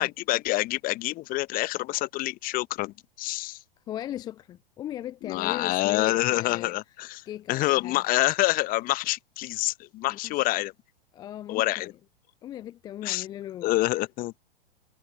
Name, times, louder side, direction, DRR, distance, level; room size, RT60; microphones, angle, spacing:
voice 1, 0.0-3.6 5.2-10.7 11.5-11.9 13.0-13.3 13.6-14.3, left 18 dB, 30° left, 1.0 m, -27 dB
voice 2, 3.9-6.7 7.3-8.0 10.1-10.5 11.1-11.6 12.4-13.8, left 12 dB, 15° left, 0.4 m, -38 dB
figure-of-eight pair, 100°, 30 cm